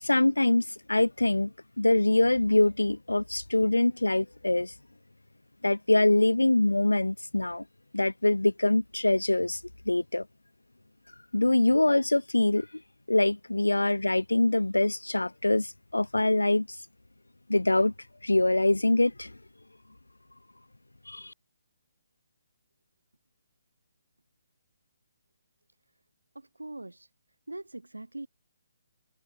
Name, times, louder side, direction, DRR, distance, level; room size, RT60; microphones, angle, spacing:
voice 1, 0.0-4.7 5.6-7.6 7.9-9.6 9.8-10.2 11.3-12.7 13.1-16.7 17.5-17.9 18.2-19.3 21.1-21.3, left 2 dB, 85° left, 1.7 m, -24 dB
voice 2, 26.3-27.1 27.5-28.3, right 2 dB, 85° right, 5.1 m, -41 dB
figure-of-eight pair, 135°, 0 cm